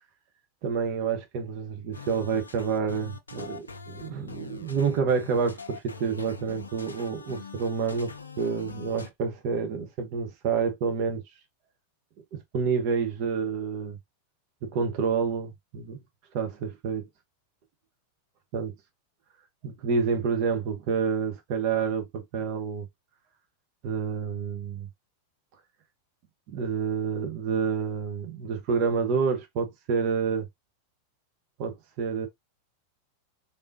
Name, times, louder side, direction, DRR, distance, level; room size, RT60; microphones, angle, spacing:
voice 1, 0.6-11.2 12.5-14.0 14.6-16.0 16.3-17.1 18.5-18.7 19.6-22.9 23.8-24.9 26.5-30.4 31.6-32.3, right 6 dB, 45° right, 0.8 m, -28 dB
sound 1, 1.9-9.1, left 5 dB, 75° left, 0.4 m, -43 dB
3.4 x 2.7 x 2.6 m
figure-of-eight pair, 90°, 0 cm